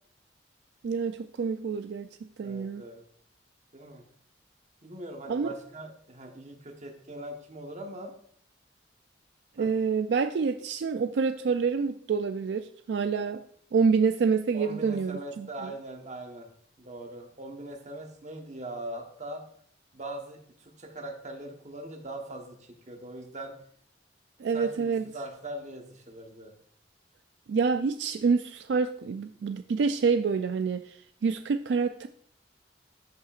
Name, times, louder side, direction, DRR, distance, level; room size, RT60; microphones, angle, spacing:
voice 1, 0.8-2.1 2.4-2.8 5.3-5.5 9.6-13.4 13.7-15.5 24.4-25.0 27.5-32.1, right 5 dB, 70° right, 9 dB, 0.3 m, -27 dB
voice 2, 2.4-3.0 3.7-4.0 4.8-8.1 9.6-9.7 14.5-16.5 16.8-19.5 19.9-23.6 24.5-26.5, right 1 dB, 40° right, 3 dB, 1.2 m, -41 dB
14.0 x 5.6 x 2.4 m, 0.63 s
head